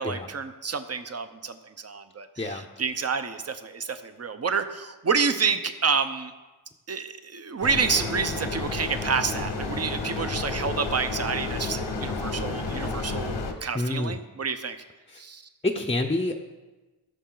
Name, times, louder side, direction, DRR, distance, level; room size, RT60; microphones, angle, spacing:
voice 1, 0.0-6.3 6.9-14.8 15.2-15.4, right 5 dB, 35° right, 9 dB, 0.8 m, -29 dB
sound 1, 7.6-13.5, left 3 dB, 90° left, 1.3 m, -31 dB
voice 2, 13.7-14.2 15.1-15.2 15.6-16.4, left 2 dB, 15° left, 1 dB, 0.6 m, -27 dB
17.5 x 6.4 x 3.9 m, 1.2 s
wide cardioid pair, 100°, 41 cm